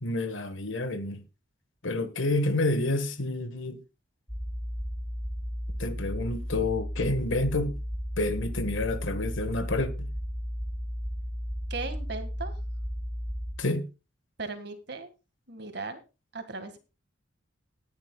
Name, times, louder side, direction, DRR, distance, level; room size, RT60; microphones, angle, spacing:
voice 1, 0.0-1.2 1.8-3.8 5.8-7.8 8.2-10.1 13.6-13.9, left 2 dB, 80° left, 1.5 m, -29 dB
sound 1, 4.3-13.5, equal, 5° left, 3.6 m, -34 dB
voice 2, 11.7-12.5 14.4-15.1 15.5-16.0 16.3-16.8, right 3 dB, 55° right, 2.0 m, -37 dB
18.0 x 10.5 x 2.4 m
head